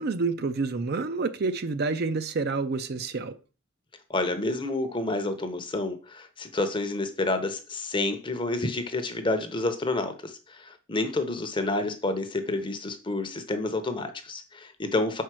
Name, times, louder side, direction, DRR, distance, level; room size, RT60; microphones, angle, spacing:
voice 1, 0.0-3.3, right 4 dB, 50° right, 0.5 m, -28 dB
voice 2, 4.1-15.2, left 2 dB, 25° left, 0.8 m, -29 dB
5.2 x 4.6 x 6.1 m
head